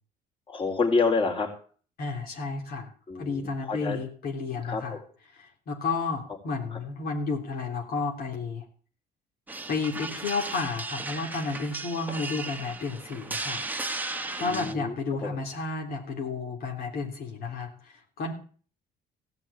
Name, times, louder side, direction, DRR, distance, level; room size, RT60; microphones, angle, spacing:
voice 1, 0.5-1.5 3.1-4.0 4.7-5.0 6.7-6.8 14.4-14.9 15.2-15.3, left 4 dB, 30° left, 2 dB, 4.1 m, -28 dB
voice 2, 2.0-2.9 3.2-5.0 5.3-8.6 9.7-13.6 14.4-18.3, left 4 dB, 65° left, 1 dB, 3.5 m, -32 dB
sound 1, 9.5-14.7, right 3 dB, 10° right, 1.2 m, -35 dB
16.5 x 6.0 x 9.9 m, 0.42 s
cardioid pair, 110°, 17 cm